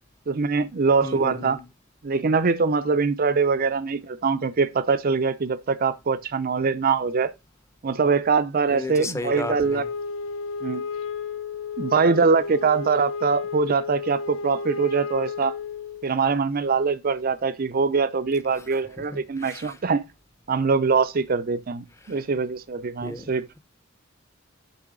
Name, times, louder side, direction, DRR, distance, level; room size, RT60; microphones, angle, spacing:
voice 1, 0.3-1.6 2.0-7.3 7.8-9.9 10.6-10.8 11.8-15.5 16.0-20.0 20.5-23.5, right 4 dB, 50° right, 0.5 m, -23 dB
voice 2, 1.0-1.6 8.7-9.9 19.1-19.8 22.0-22.1 23.0-23.6, left 1 dB, 15° left, 0.7 m, -34 dB
Wind instrument woodwind instrument, 9.3-16.1, left 5 dB, 75° left, 0.6 m, -33 dB
6.9 x 5.5 x 3.7 m
head